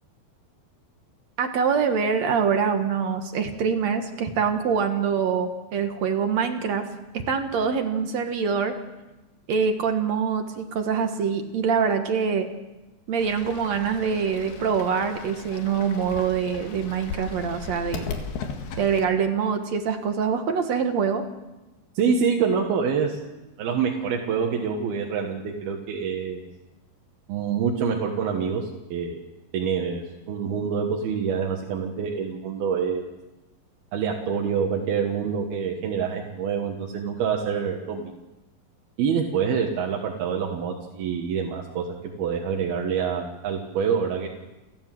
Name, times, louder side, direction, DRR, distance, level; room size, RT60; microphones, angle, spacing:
voice 1, 1.4-6.9 7.1-8.8 9.5-12.5 13.1-18.1 18.8-21.2, right 6 dB, 55° right, 6 dB, 2.2 m, -24 dB
Fowl / Bird, 13.2-19.0, left 5 dB, 85° left, 3.8 m, -37 dB
voice 2, 21.9-23.2 23.6-26.4 27.3-29.2 29.5-33.0 33.9-38.1 39.0-41.9 42.2-44.3, right 6 dB, 80° right, 1 dB, 3.4 m, -26 dB
29.5 x 13.0 x 7.7 m, 1.1 s
omnidirectional pair, 4.3 m